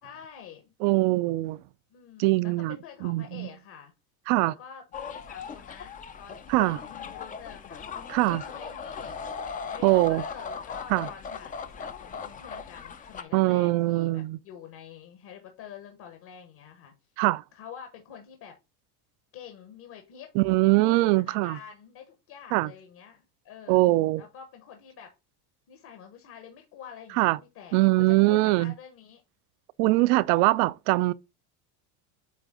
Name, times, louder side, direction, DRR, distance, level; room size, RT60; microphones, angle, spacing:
voice 1, 0.0-0.7 1.9-3.9 4.4-9.2 9.7-16.9 17.5-18.6 19.3-20.3 20.8-23.8 24.2-25.1 25.7-29.2, left 8 dB, 55° left, 1.6 m, -47 dB
voice 2, 0.8-1.6 2.2-2.8 3.0-3.5 4.3-4.5 6.5-6.8 8.1-8.4 9.8-10.2 10.9-11.1 13.3-14.4 17.2-17.4 20.4-21.6 22.5-22.7 23.7-24.2 27.2-27.4 27.7-28.7 29.8-31.1, right 20 dB, 65° right, 0.5 m, -22 dB
sound 1, 4.9-13.2, left 6 dB, 20° left, 0.3 m, -39 dB
8.5 x 3.4 x 3.7 m
supercardioid pair, 120°, 47 cm